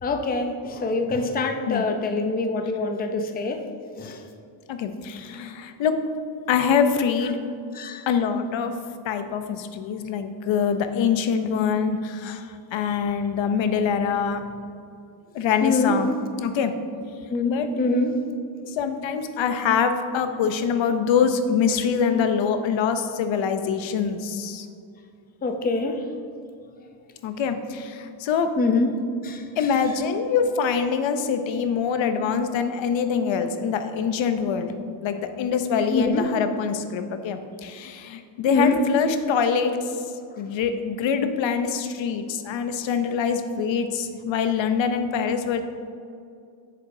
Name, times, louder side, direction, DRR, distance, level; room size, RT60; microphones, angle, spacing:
voice 1, 0.0-3.6 4.0-4.2 7.7-8.1 15.6-15.9 17.3-18.2 25.4-26.1 28.6-29.7 35.9-36.3 38.5-38.8, left 3 dB, 20° left, 5 dB, 0.5 m, -25 dB
voice 2, 4.7-6.0 6.5-7.4 8.1-8.8 9.0-14.4 15.3-16.1 16.4-16.8 17.4-17.7 18.6-24.7 27.2-28.5 29.6-34.7 35.0-39.9 40.4-45.6, left 6 dB, 70° left, 8 dB, 0.7 m, -24 dB
7.6 x 6.9 x 2.6 m, 2.4 s
cardioid pair, 110°, 47 cm